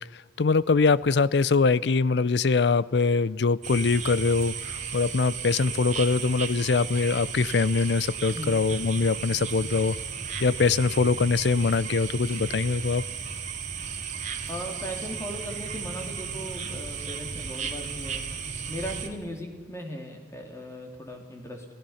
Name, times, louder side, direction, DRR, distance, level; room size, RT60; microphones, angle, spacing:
voice 1, 0.1-10.0 10.4-13.0, left 4 dB, 75° left, 20 dB, 0.5 m, -23 dB
sound 1, 3.6-19.1, right 6 dB, 45° right, 2.1 m, -35 dB
voice 2, 14.5-18.3 18.7-21.6, equal, 15° left, 3 dB, 2.9 m, -38 dB
27.0 x 17.0 x 5.7 m, 1.6 s
head